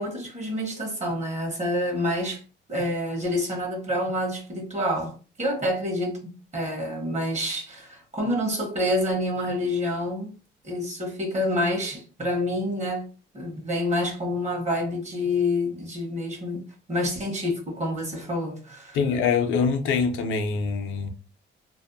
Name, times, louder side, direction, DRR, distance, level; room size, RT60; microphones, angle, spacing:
voice 1, 0.0-2.4 2.7-10.3 10.6-13.1 13.3-19.0, left 1 dB, 35° right, 1.2 m, -28 dB
voice 2, 18.9-21.1, left 5 dB, 80° left, 0.5 m, -24 dB
2.6 x 2.0 x 2.6 m
cardioid pair, 90°, 20 cm